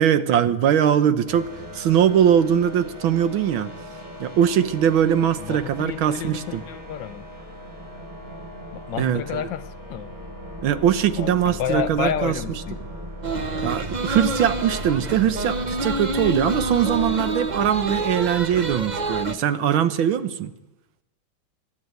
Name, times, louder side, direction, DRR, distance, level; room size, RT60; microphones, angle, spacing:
voice 1, 0.0-3.7 4.2-6.6 9.0-9.4 10.6-12.4 13.6-20.5, right 9 dB, 80° right, 1.8 m, -21 dB
sound 1, 1.3-17.2, equal, 10° right, 2.9 m, -38 dB
voice 2, 5.4-7.2 8.7-10.2 11.2-12.8, left 9 dB, 70° left, 1.4 m, -30 dB
sound 2, 13.2-19.3, right 2 dB, 50° right, 0.5 m, -27 dB
24.0 x 12.0 x 9.4 m
omnidirectional pair, 2.2 m